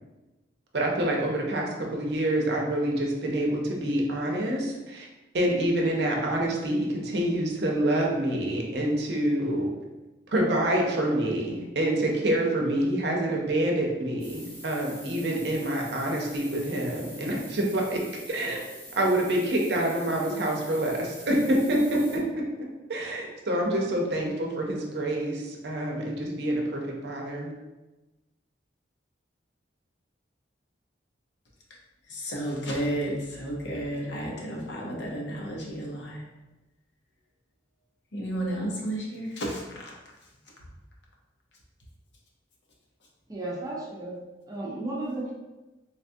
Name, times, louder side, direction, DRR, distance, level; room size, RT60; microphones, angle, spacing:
voice 1, 0.7-5.1 5.3-9.7 10.3-18.0 18.3-18.6 19.0-22.2 22.9-27.5, right 1 dB, 65° right, -1 dB, 0.6 m, -27 dB
sound 1, 14.2-22.2, equal, 15° left, 0.8 m, -46 dB
voice 2, 32.1-36.2 38.1-39.9, right 1 dB, 75° left, -2 dB, 0.8 m, -32 dB
voice 3, 43.3-44.1 44.5-45.3, right 2 dB, 20° right, -4 dB, 0.6 m, -33 dB
4.0 x 2.3 x 2.6 m, 1.1 s
head